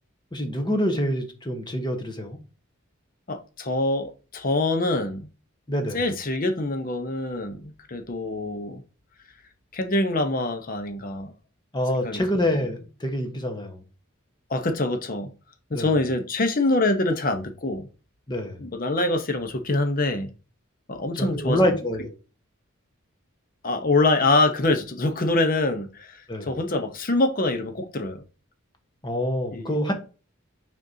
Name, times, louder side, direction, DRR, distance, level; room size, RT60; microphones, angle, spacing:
voice 1, 0.3-2.4 5.7-6.0 11.7-13.8 15.7-15.9 18.3-18.6 21.2-22.1 26.3-26.5 29.0-29.9, equal, 20° left, 1.1 m, -26 dB
voice 2, 3.3-5.3 5.9-8.8 9.7-11.3 11.9-12.2 14.5-15.3 15.7-17.9 18.6-20.3 20.9-21.7 23.6-28.2 29.5-29.8, left 2 dB, 40° left, 0.8 m, -25 dB
6.4 x 5.3 x 2.7 m
head